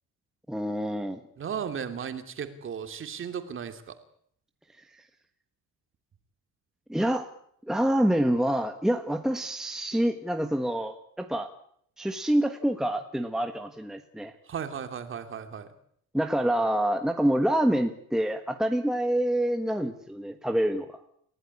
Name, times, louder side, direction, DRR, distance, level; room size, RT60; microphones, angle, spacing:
voice 1, 0.5-1.2 6.9-7.3 7.7-11.5 12.0-14.3 16.1-21.0, right 1 dB, ahead, 6 dB, 1.3 m, -26 dB
voice 2, 1.4-3.9 14.5-15.7, right 7 dB, 35° right, 8 dB, 2.8 m, -35 dB
29.5 x 16.0 x 9.9 m, 0.69 s
cardioid pair, 170°, 36 cm